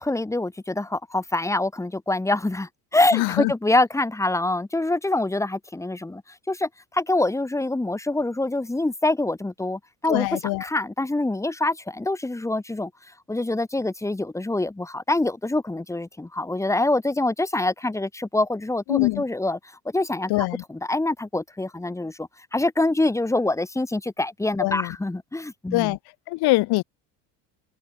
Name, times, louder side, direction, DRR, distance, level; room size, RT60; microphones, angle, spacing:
voice 1, 0.0-6.2 6.5-12.9 13.3-19.6 19.9-26.0, left 2 dB, 5° left, 1.8 m, -25 dB
voice 2, 3.1-3.5 10.1-10.7 18.9-19.2 20.3-20.6 24.6-24.9 25.7-26.0 26.3-26.8, left 21 dB, 65° left, 3.4 m, -23 dB
supercardioid pair, 115°, 40 cm